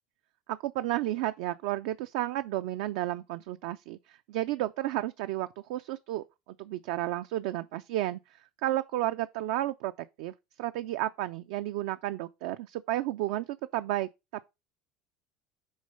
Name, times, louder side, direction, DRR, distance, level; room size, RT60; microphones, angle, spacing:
voice 1, 0.5-6.2 6.6-9.9 10.2-13.5 13.7-14.1, right 15 dB, 75° right, 0.3 m, -32 dB
6.4 x 3.7 x 5.3 m
supercardioid pair, 95°, 0 cm